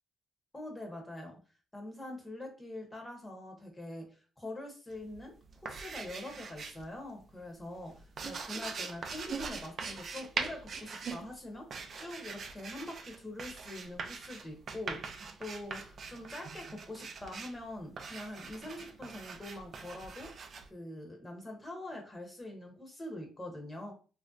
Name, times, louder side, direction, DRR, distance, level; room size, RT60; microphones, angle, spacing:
voice 1, 0.5-1.4 1.7-5.3 5.6-20.3 20.7-23.9, left 1 dB, 20° left, 1 dB, 1.0 m, -44 dB
sound 1, 4.9-6.9 7.2-20.7, right 5 dB, 55° right, 0.5 m, -42 dB
3.2 x 2.6 x 2.4 m, 0.36 s
cardioid pair, 90°, 0 cm